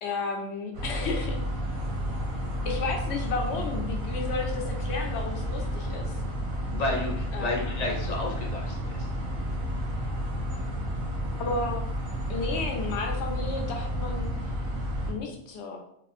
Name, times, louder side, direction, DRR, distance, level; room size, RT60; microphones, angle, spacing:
voice 1, 0.0-1.4 2.6-6.2 7.3-7.6 11.3-11.9 12.3-14.3 15.1-15.8, left 3 dB, 65° left, 2 dB, 0.8 m, -32 dB
sound 1, 0.7-15.1, equal, 90° right, 1.5 m, -31 dB
voice 2, 6.7-9.1, left 2 dB, 45° left, -1 dB, 0.5 m, -31 dB
4.4 x 2.5 x 2.5 m, 0.73 s
omnidirectional pair, 1.4 m